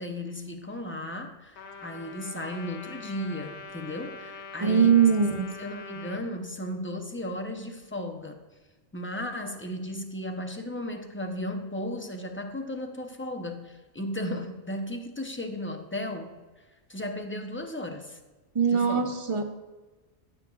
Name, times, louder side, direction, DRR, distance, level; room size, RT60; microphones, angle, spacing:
voice 1, 0.0-5.0 5.6-8.4 8.9-16.4 16.9-18.2 18.7-19.1, left 1 dB, 15° left, 0.5 m, -35 dB
Trumpet, 1.6-6.2, left 5 dB, 75° left, 1.0 m, -43 dB
voice 2, 4.6-5.5 18.5-19.4, right 6 dB, 35° right, 0.6 m, -21 dB
13.0 x 6.9 x 2.3 m
omnidirectional pair, 1.1 m